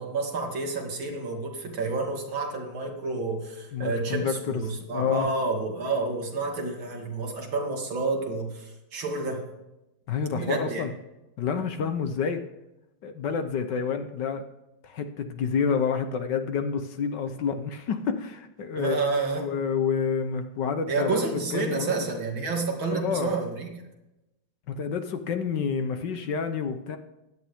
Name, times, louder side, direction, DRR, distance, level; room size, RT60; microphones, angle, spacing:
voice 1, 0.0-9.5 10.3-10.8 18.7-19.5 20.9-23.7, right 3 dB, 70° right, 1 dB, 3.1 m, -29 dB
voice 2, 3.7-4.6 4.9-5.3 10.1-10.9 11.4-12.4 13.0-14.4 14.8-19.0 19.4-21.2 21.5-21.9 22.9-23.3 24.7-27.0, left 6 dB, 65° left, 8 dB, 1.5 m, -28 dB
16.5 x 11.5 x 3.6 m, 0.95 s
omnidirectional pair, 2.3 m